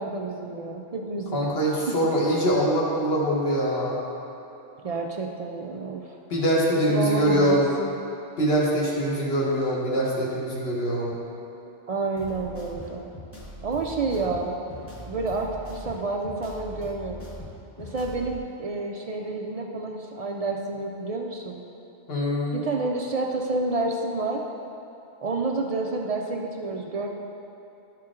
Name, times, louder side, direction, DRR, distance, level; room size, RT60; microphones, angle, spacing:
voice 1, 0.0-1.5 4.8-6.2 6.9-7.9 11.9-13.1 13.6-14.6 15.1-17.2 17.8-21.6 22.5-24.4 25.2-27.1, right 3 dB, 70° right, 1 dB, 0.3 m, -29 dB
voice 2, 1.3-4.0 6.3-7.7 8.4-11.2 22.1-22.6, equal, 55° left, -4 dB, 1.5 m, -23 dB
sound 1, 12.2-18.4, left 1 dB, 15° left, 0.8 m, -41 dB
11.5 x 4.4 x 3.7 m, 2.9 s
omnidirectional pair, 1.2 m